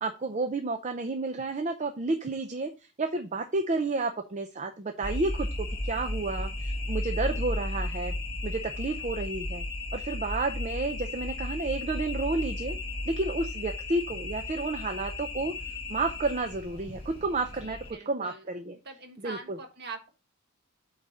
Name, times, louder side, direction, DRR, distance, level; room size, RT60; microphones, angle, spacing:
voice 1, 0.0-2.7 3.0-8.1 8.4-9.7 9.9-12.8 13.1-15.5 15.9-17.8 18.1-18.8 19.2-19.6, right 3 dB, 30° right, 7 dB, 0.5 m, -31 dB
sound 1, 5.0-17.9, left 2 dB, 25° left, 1.8 m, -34 dB
voice 2, 17.6-18.5 18.8-20.1, right 3 dB, 50° right, 4 dB, 1.5 m, -43 dB
8.5 x 4.0 x 4.1 m, 0.31 s
head